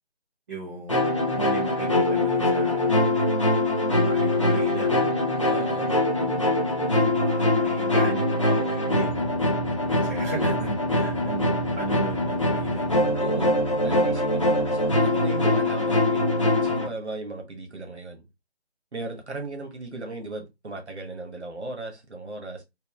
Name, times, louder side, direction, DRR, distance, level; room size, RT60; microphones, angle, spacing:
voice 1, 0.5-2.9 3.9-5.2 6.1-6.6 7.2-9.3 9.9-12.8, right 4 dB, 15° right, 0.8 m, -37 dB
sound 1, 0.9-16.9, left 1 dB, 30° left, 0.5 m, -23 dB
voice 2, 5.5-6.0 6.6-6.9 10.3-10.4 13.2-13.5 13.8-18.2 18.9-22.6, right 2 dB, 75° right, 1.3 m, -37 dB
3.6 x 2.7 x 2.4 m
figure-of-eight pair, 150°, 34 cm